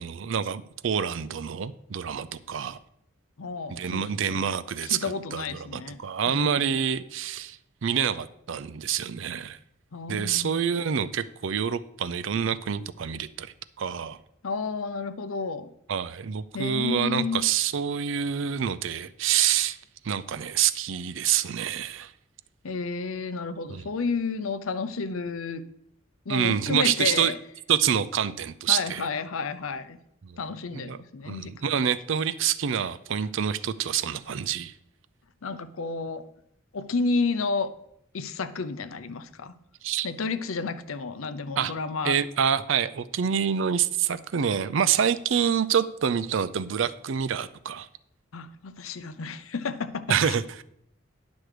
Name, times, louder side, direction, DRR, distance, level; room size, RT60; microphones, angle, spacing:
voice 1, 0.0-2.8 3.7-5.0 5.3-9.6 10.1-14.2 15.9-19.8 20.0-22.1 23.7-23.9 26.3-27.3 27.7-29.1 30.2-30.4 30.8-31.0 31.3-34.7 39.8-40.1 41.6-41.7 42.0-47.9 50.1-50.6, right 8 dB, 65° right, 16 dB, 0.4 m, -27 dB
voice 2, 3.4-4.5 4.8-6.8 9.9-10.8 14.4-15.7 16.5-17.4 22.6-25.6 26.3-27.4 28.7-30.0 30.4-31.8 35.4-36.2 36.7-37.7 38.1-39.6 40.0-42.2 48.3-50.4, left 4 dB, 85° left, 12 dB, 0.7 m, -31 dB
10.5 x 6.2 x 4.9 m, 0.76 s
head